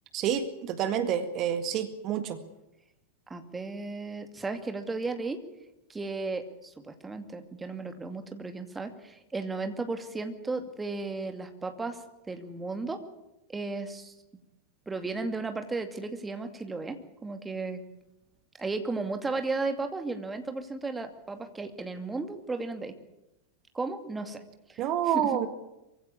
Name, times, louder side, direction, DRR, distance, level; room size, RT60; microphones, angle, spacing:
voice 1, 0.1-2.4 24.8-25.5, right 9 dB, 35° right, 9 dB, 1.9 m, -28 dB
voice 2, 3.3-5.4 5.9-13.0 13.5-14.1 14.9-17.8 18.6-23.0 23.7-24.4 24.7-25.5, right 3 dB, 10° right, 7 dB, 2.4 m, -35 dB
23.5 x 16.0 x 9.7 m, 0.93 s
figure-of-eight pair, 90°, 0 cm